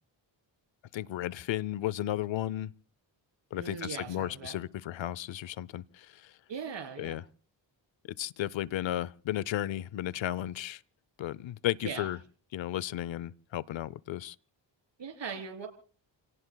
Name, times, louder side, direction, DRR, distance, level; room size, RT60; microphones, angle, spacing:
voice 1, 0.9-2.7 3.5-6.3 7.0-7.2 8.2-10.8 11.2-12.2 12.5-14.4, left 13 dB, 70° left, 0.7 m, -34 dB
voice 2, 3.6-4.6 6.5-7.2 11.8-12.1 15.0-15.7, right 6 dB, 65° right, 3.5 m, -39 dB
29.5 x 17.5 x 2.3 m
cardioid pair, 75°, 47 cm